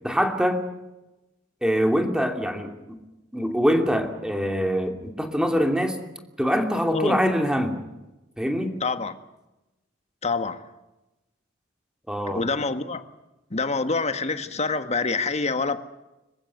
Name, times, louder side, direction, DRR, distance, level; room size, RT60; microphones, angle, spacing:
voice 1, 0.0-0.6 1.6-3.0 3.3-6.0 6.4-7.8 8.4-8.8 12.1-12.4, equal, 5° right, 2.8 m, -24 dB
voice 2, 8.8-9.2 10.2-10.7 12.3-13.0 13.5-15.8, left 3 dB, 35° left, 1.5 m, -26 dB
26.5 x 15.0 x 9.4 m
head